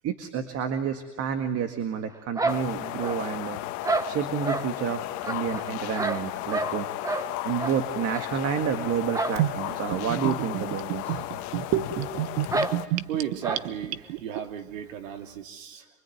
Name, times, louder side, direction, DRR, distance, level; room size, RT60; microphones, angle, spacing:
voice 1, 0.0-3.6 4.1-6.9 7.4-11.2 11.7-12.1, right 8 dB, 40° right, 7 dB, 1.9 m, -29 dB
sound 1, 2.4-3.4 3.8-4.7 5.2-6.8 7.0-7.3 7.6-7.8 8.1-8.2 9.1-9.4 9.7-9.8 10.2-10.3 11.1-11.2 11.5-11.6 12.5-12.8 13.4-13.6, right 2 dB, 10° right, 1.1 m, -29 dB
sound 2, 2.5-12.9, left 16 dB, 50° left, 1.4 m, -34 dB
Gurgling / Bathtub (filling or washing), 9.4-14.4, right 14 dB, 60° right, 1.1 m, -30 dB
voice 2, 13.1-15.9, right 9 dB, 90° right, 5 dB, 2.9 m, -35 dB
25.0 x 24.0 x 9.4 m, 1.1 s
supercardioid pair, 135°, 38 cm